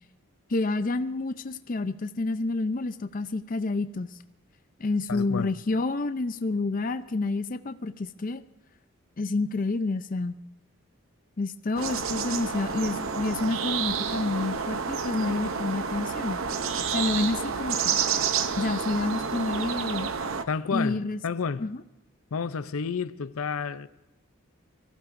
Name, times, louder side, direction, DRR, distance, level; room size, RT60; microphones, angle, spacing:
voice 1, 0.5-4.2 4.8-8.4 9.2-10.4 11.4-16.4 16.9-18.0 18.6-20.1 20.7-21.2 21.6-21.8, left 3 dB, 40° left, 0.5 m, -29 dB
voice 2, 5.1-5.5 20.5-21.7 22.3-23.9, left 5 dB, 85° left, 0.6 m, -30 dB
sound 1, 11.8-20.4, right 6 dB, 70° right, 0.7 m, -29 dB
23.0 x 15.5 x 2.6 m
head